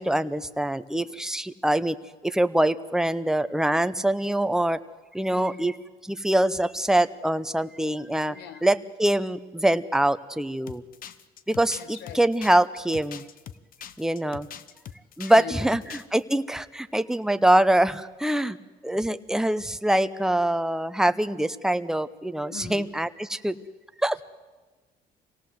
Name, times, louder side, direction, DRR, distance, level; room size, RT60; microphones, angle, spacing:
voice 1, 0.0-2.0 2.2-4.8 5.1-5.7 6.1-8.3 8.6-10.8 11.5-13.2 14.0-14.5 15.2-15.8 16.1-18.6 18.8-23.6 24.0-24.2, right 1 dB, 5° right, 11 dB, 0.8 m, -24 dB
voice 2, 5.3-5.7 8.3-8.7 11.8-12.3 15.4-15.9 22.5-22.9 24.1-24.2, left 9 dB, 80° left, 12 dB, 1.8 m, -41 dB
sound 1, 10.7-15.4 15.7-16.2, left 9 dB, 55° left, 1.0 m, -42 dB
25.5 x 18.0 x 7.8 m, 1.3 s
cardioid pair, 110°, 17 cm